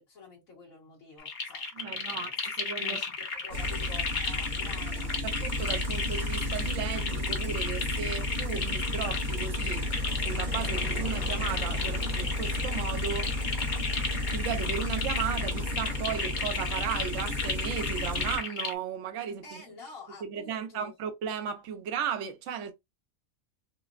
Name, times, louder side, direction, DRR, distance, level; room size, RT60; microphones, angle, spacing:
voice 1, 0.0-5.1 19.4-20.9, left 4 dB, 75° left, 1.8 m, -48 dB
sound 1, 1.2-18.7, left 4 dB, 45° left, 0.7 m, -34 dB
voice 2, 1.7-2.3 2.6-3.0 5.2-9.9 10.2-13.3 14.1-19.6 20.2-22.7, right 8 dB, 65° right, 1.0 m, -35 dB
sound 2, 3.5-18.4, left 1 dB, 85° right, 1.3 m, -33 dB
sound 3, 8.7-16.8, right 4 dB, 35° right, 0.8 m, -47 dB
4.9 x 2.0 x 2.4 m
omnidirectional pair, 1.5 m